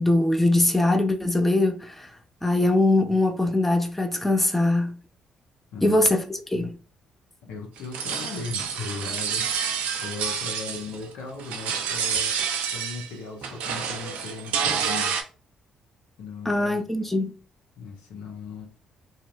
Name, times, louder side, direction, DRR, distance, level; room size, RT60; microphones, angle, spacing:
voice 1, 0.0-2.1 2.4-5.0 5.8-6.2 6.5-6.7 16.5-17.3, left 2 dB, 10° left, 0.5 m, -22 dB
voice 2, 5.7-6.1 7.4-9.5 10.0-15.3 16.2-17.1 17.8-18.7, left 4 dB, 75° left, 0.7 m, -38 dB
sound 1, 7.8-11.1 11.4-13.1 13.4-15.2, right 7 dB, 75° right, 0.4 m, -28 dB
2.7 x 2.1 x 2.4 m
hypercardioid pair, 50°, 2 cm